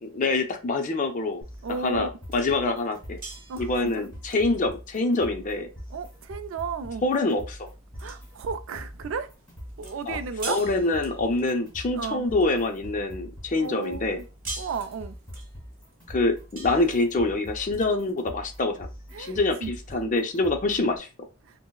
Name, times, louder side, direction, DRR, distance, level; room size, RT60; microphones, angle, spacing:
voice 1, 0.0-1.4 1.8-3.2 3.6-5.7 7.0-7.7 10.1-10.2 10.5-14.2 16.1-18.9 19.2-21.1, left 2 dB, 35° left, 0.5 m, -25 dB
sound 1, 1.4-21.0, equal, 10° left, 1.9 m, -43 dB
voice 2, 1.6-2.1 3.5-4.1 5.9-7.0 8.0-9.3 9.8-10.6 11.9-12.3 13.6-14.3 14.6-15.2 19.1-20.0, right 4 dB, 65° right, 0.3 m, -34 dB
sound 2, 2.3-12.9 13.3-18.1, right 3 dB, 40° right, 1.1 m, -44 dB
5.3 x 2.0 x 2.3 m
head